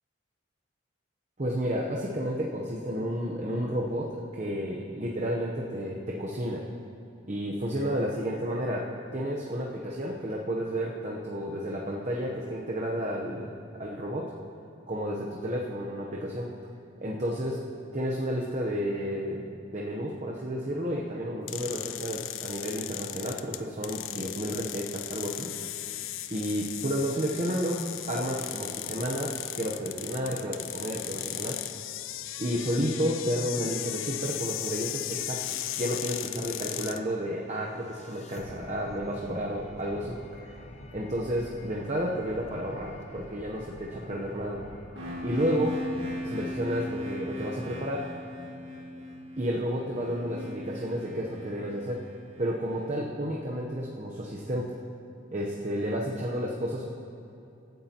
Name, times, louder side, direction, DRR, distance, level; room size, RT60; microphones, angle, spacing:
voice 1, 1.4-6.6 7.3-14.3 14.9-16.5 17.0-17.6 17.9-19.5 19.7-25.5 26.3-31.6 32.4-40.5 40.9-44.6 45.2-45.8 46.2-48.1 49.4-52.0 52.4-54.8 55.3-56.8, equal, 35° right, -2 dB, 0.9 m, -31 dB
sound 1, 21.5-37.0, left 13 dB, 80° left, 0.4 m, -36 dB
sound 2, 37.3-46.5, left 1 dB, 35° left, 0.7 m, -48 dB
sound 3, 44.9-52.8, left 1 dB, 80° right, 1.7 m, -38 dB
23.0 x 9.3 x 2.9 m, 2.7 s
head